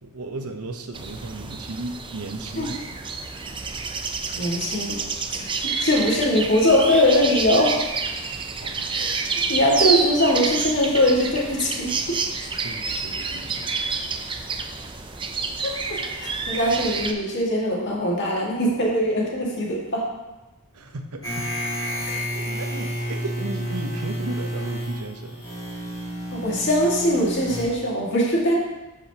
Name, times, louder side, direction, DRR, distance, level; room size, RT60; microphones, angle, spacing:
voice 1, 0.0-2.8 8.6-8.9 12.6-14.0 20.7-21.5 21.9-25.4, right 2 dB, 80° right, 6 dB, 0.8 m, -35 dB
sound 1, 0.9-17.1, right 4 dB, 20° right, 0.5 m, -29 dB
voice 2, 4.4-5.0 5.3-7.7 8.9-9.2 9.5-12.0 15.6-15.7 16.2-20.0 26.3-28.5, equal, 55° left, -3 dB, 1.9 m, -21 dB
sound 2, 21.2-27.6, equal, 20° left, 2.3 m, -30 dB
12.5 x 4.9 x 2.9 m, 1.1 s
head